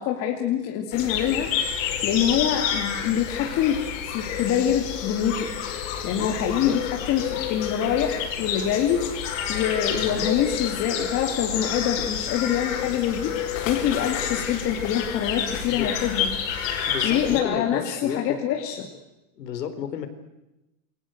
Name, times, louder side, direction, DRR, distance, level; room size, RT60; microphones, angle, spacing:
voice 1, 0.0-1.5 2.0-5.5 6.0-13.3 13.7-16.3 17.0-18.9, left 9 dB, 30° left, 2 dB, 2.6 m, -25 dB
sound 1, 0.9-17.4, left 8 dB, 50° left, 5.4 m, -29 dB
voice 2, 6.2-6.8 10.0-10.3 15.7-16.0 16.9-18.4 19.3-20.1, left 8 dB, 85° left, 10 dB, 4.5 m, -32 dB
28.5 x 22.5 x 8.0 m, 0.96 s
supercardioid pair, 160°, 48 cm